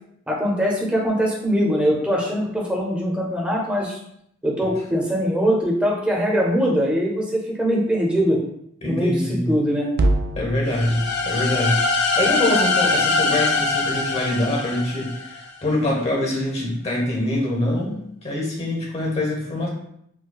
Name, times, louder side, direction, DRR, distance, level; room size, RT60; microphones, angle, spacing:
voice 1, 0.3-4.0 4.4-8.4 8.8-9.9, equal, 5° right, -3 dB, 0.7 m, -22 dB
voice 2, 8.8-9.5 10.3-18.0 18.2-19.7, left 1 dB, 35° left, -2 dB, 1.0 m, -24 dB
sound 1, 9.9-14.3, right 1 dB, 55° right, 0.3 m, -29 dB
sound 2, 10.7-15.5, left 3 dB, 60° left, 0.5 m, -23 dB
4.6 x 2.2 x 2.3 m, 0.72 s
head